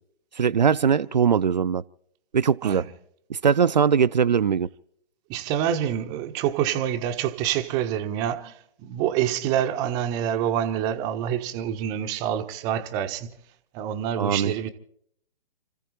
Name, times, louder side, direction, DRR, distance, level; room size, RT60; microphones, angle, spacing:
voice 1, 0.3-1.8 2.3-2.9 3.3-4.7 14.2-14.7, right 7 dB, 50° right, 0.5 m, -21 dB
voice 2, 5.3-13.3 13.7-14.7, right 10 dB, 15° right, 0.7 m, -27 dB
29.5 x 15.0 x 2.9 m
figure-of-eight pair, 130°, 29 cm